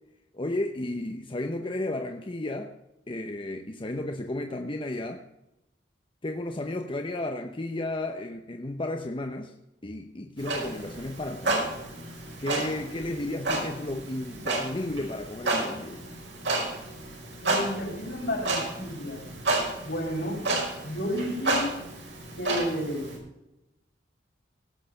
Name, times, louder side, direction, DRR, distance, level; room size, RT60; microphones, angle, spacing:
voice 1, 0.3-2.7 3.1-5.2 6.2-9.5 9.8-11.7 12.4-16.0, left 1 dB, 30° left, 5 dB, 0.8 m, -33 dB
Clock, 10.4-23.2, right 2 dB, 85° right, 5.6 m, -32 dB
voice 2, 17.4-19.2 19.8-20.4 20.8-21.7 22.4-23.1, equal, 65° left, -1 dB, 5.3 m, -31 dB
18.0 x 6.6 x 6.5 m, 0.91 s
head